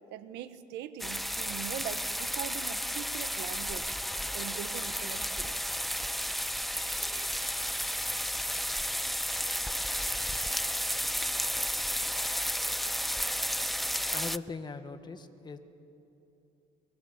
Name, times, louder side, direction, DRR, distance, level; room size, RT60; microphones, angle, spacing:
voice 1, 0.1-4.0 4.3-5.6, right 11 dB, 90° right, 11 dB, 1.4 m, -41 dB
sound 1, 1.0-14.4, equal, ahead, 0.5 m, -32 dB
sound 2, 6.7-12.2, right 2 dB, 25° right, 6.1 m, -54 dB
voice 2, 14.1-15.6, left 4 dB, 25° left, 8 dB, 1.7 m, -40 dB
30.0 x 23.5 x 8.2 m, 2.9 s
cardioid pair, 110°, 17 cm